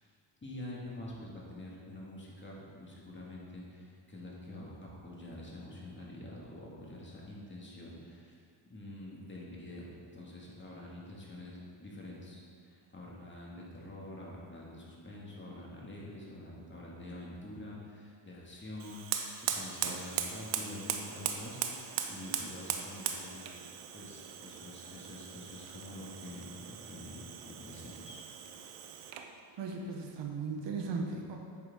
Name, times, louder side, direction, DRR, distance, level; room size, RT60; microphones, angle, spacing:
voice 1, 0.4-8.3 8.7-23.4 23.9-28.2, left 1 dB, 25° left, -4 dB, 2.1 m, -47 dB
Fire, 18.8-29.3, right 8 dB, 85° right, 0.8 m, -39 dB
voice 2, 29.6-31.4, right 4 dB, 60° right, 2 dB, 1.1 m, -37 dB
8.7 x 6.8 x 3.7 m, 2.2 s
cardioid pair, 90°, 49 cm